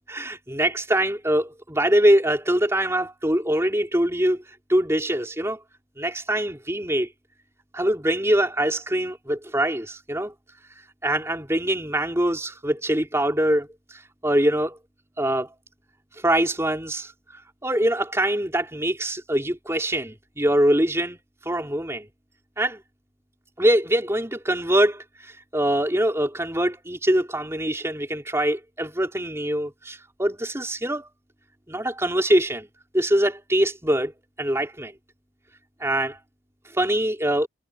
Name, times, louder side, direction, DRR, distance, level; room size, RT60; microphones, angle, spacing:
voice 1, 0.1-4.4 4.7-5.6 6.0-7.1 7.7-10.3 11.0-14.8 15.2-15.5 16.2-17.1 17.6-21.2 21.5-22.1 22.6-22.8 23.6-31.1 31.7-32.7 32.9-34.1 34.4-34.9 35.8-36.2 36.7-37.5, right 1 dB, 15° right, 3.9 m, -23 dB
head